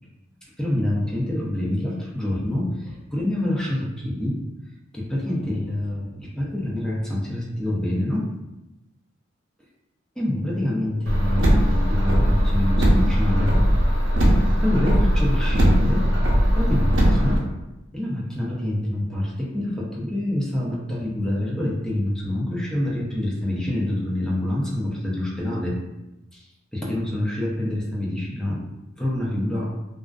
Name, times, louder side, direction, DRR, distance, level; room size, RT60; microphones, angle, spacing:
voice 1, 0.6-4.4 4.9-8.4 10.2-13.6 14.6-16.2 16.5-17.5 17.9-25.8 26.3-28.7 29.0-29.8, left 1 dB, 5° left, -5 dB, 0.5 m, -26 dB
Car, 11.1-17.4, equal, 75° right, 0.6 m, -19 dB
2.4 x 2.3 x 2.2 m, 0.97 s
head